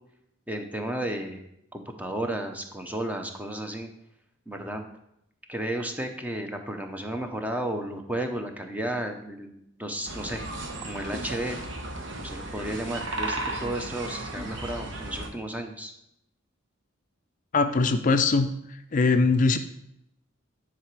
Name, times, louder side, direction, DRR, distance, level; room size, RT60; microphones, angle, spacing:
voice 1, 0.5-1.4 1.7-3.9 4.5-4.8 5.5-10.4 10.8-11.6 12.2-15.9, right 1 dB, 10° right, 4 dB, 0.6 m, -33 dB
sound 1, 10.0-15.3, right 2 dB, 70° right, 1.0 m, -35 dB
voice 2, 17.5-18.5 18.9-19.6, left 3 dB, 40° left, 8 dB, 0.4 m, -21 dB
9.5 x 4.0 x 4.6 m, 0.80 s
head